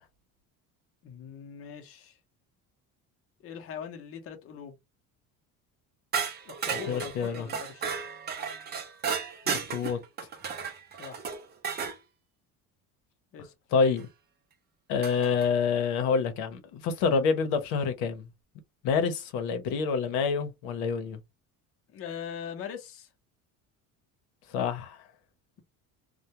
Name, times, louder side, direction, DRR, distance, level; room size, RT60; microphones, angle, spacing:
voice 1, 1.0-2.2 3.4-4.8 6.4-8.0 11.0-11.2 13.3-13.5 21.9-23.1, left 7 dB, 40° left, 0.6 m, -41 dB
sound 1, 6.1-12.0 14.0-14.1 15.0-15.5, right 6 dB, 25° right, 0.5 m, -34 dB
voice 2, 6.7-7.5 9.5-10.0 13.7-14.1 14.9-18.2 18.8-21.2 24.5-25.0, left 5 dB, 80° left, 0.8 m, -27 dB
2.2 x 2.1 x 2.8 m
cardioid pair, 150°, 37 cm